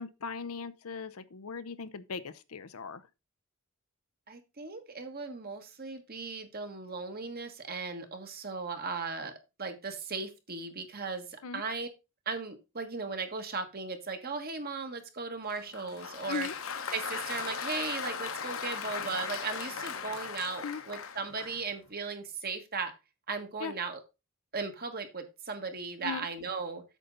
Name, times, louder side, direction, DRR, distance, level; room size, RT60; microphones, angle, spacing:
voice 1, 0.0-3.0 11.4-11.6 16.3-16.5 20.6-20.8 23.6-23.7 26.0-26.3, left 5 dB, 85° left, 0.7 m, -38 dB
voice 2, 4.3-9.3 9.6-11.9 12.2-16.5 16.9-22.9 23.3-24.0 24.5-26.8, right 4 dB, 45° right, 1.6 m, -37 dB
Applause, 15.5-21.7, left 6 dB, 65° left, 1.0 m, -38 dB
8.3 x 6.8 x 3.9 m
head